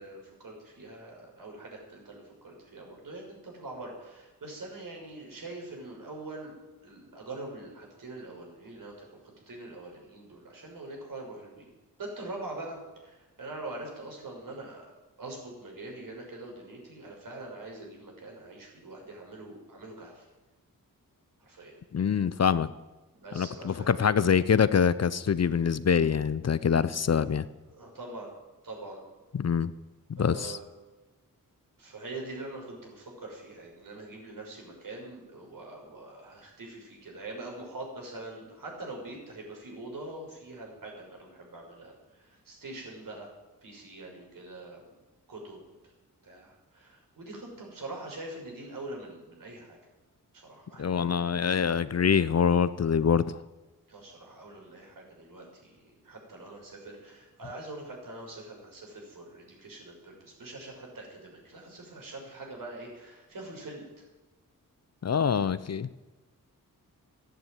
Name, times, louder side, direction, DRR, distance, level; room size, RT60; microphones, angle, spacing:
voice 1, 0.0-6.5 6.8-9.1 9.5-11.7 12.0-14.8 15.2-20.3 21.5-21.8 23.2-23.9 27.7-28.3 28.6-29.0 30.2-30.6 31.8-43.3 43.6-44.9 45.3-45.7 46.2-49.8 50.3-50.9 53.9-63.9, right 2 dB, 70° right, 0 dB, 6.1 m, -43 dB
voice 2, 21.9-22.7 23.3-27.5 29.3-29.7 30.1-30.6 50.8-53.2 65.0-65.9, left 7 dB, 45° left, 15 dB, 0.7 m, -25 dB
14.5 x 10.5 x 9.3 m, 1.1 s
cardioid pair, 70°, 35 cm